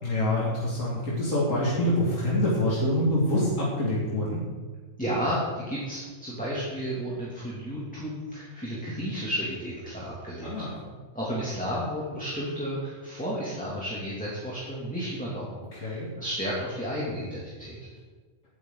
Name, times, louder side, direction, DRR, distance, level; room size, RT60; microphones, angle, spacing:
voice 1, 0.0-4.4 10.4-10.8 15.7-16.1, left 1 dB, 85° left, -6 dB, 2.8 m, -26 dB
voice 2, 5.0-10.5 11.1-17.8, equal, 5° left, -7 dB, 2.6 m, -32 dB
17.5 x 10.5 x 4.0 m, 1.4 s
omnidirectional pair, 1.3 m